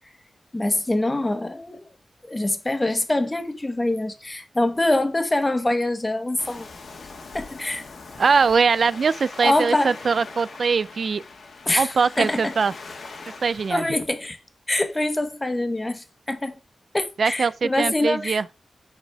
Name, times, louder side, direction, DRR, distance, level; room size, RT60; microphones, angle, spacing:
voice 1, 0.5-1.9 2.2-6.7 7.3-7.8 9.4-9.9 11.7-12.5 13.7-14.4 14.7-16.6 16.9-18.4, left 1 dB, 25° left, 1.2 m, -24 dB
Waves surf, 6.4-13.7, left 4 dB, 75° left, 1.4 m, -41 dB
voice 2, 8.2-11.2 11.8-12.7 13.4-13.8 17.2-18.5, right 5 dB, 65° right, 0.4 m, -21 dB
6.1 x 4.1 x 4.7 m
cardioid pair, 60°, 0 cm